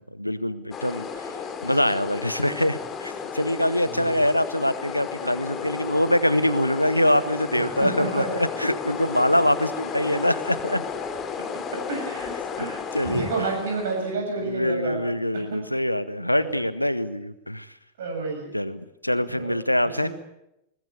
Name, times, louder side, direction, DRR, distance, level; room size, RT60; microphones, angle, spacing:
voice 1, 0.1-1.3 1.6-10.8 12.9-13.3 14.4-17.7 18.5-20.1, left 1 dB, 90° left, 16 dB, 0.9 m, -24 dB
sound 1, 0.7-14.1, left 6 dB, 25° left, 2.9 m, -33 dB
voice 2, 7.6-8.3 11.9-12.3 12.6-15.0 15.3-15.6 16.4-16.5 18.0-18.6 19.3-19.6 20.0-20.1, right 3 dB, 60° right, 2 dB, 7.0 m, -30 dB
20.5 x 20.5 x 8.4 m, 0.85 s
figure-of-eight pair, 90°, 0 cm